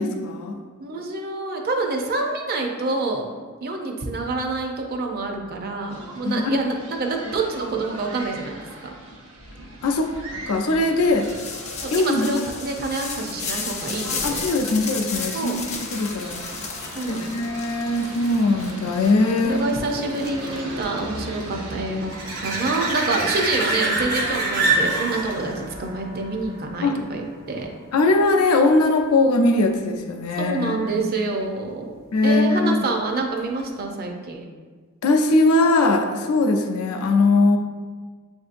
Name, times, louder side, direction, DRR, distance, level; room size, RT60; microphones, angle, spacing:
voice 1, 0.0-0.6 6.2-6.6 9.8-10.1 10.5-11.3 11.9-12.4 14.2-16.4 17.1-19.6 26.8-27.0 27.9-30.9 32.1-32.8 35.0-37.6, left 2 dB, 90° left, 3 dB, 0.5 m, -20 dB
voice 2, 0.8-3.3 3.6-8.7 11.8-14.4 15.3-15.6 16.9-17.4 19.4-22.1 22.4-27.7 30.4-31.9 32.2-34.4, right 3 dB, 45° right, 2 dB, 0.5 m, -27 dB
sound 1, 5.9-24.8, right 1 dB, 85° right, 0.9 m, -39 dB
sound 2, 11.1-21.0, left 5 dB, 30° left, 0.5 m, -33 dB
sound 3, 16.5-27.7 33.4-33.5, right 2 dB, 70° right, 1.3 m, -29 dB
6.9 x 2.7 x 2.5 m, 1.5 s
head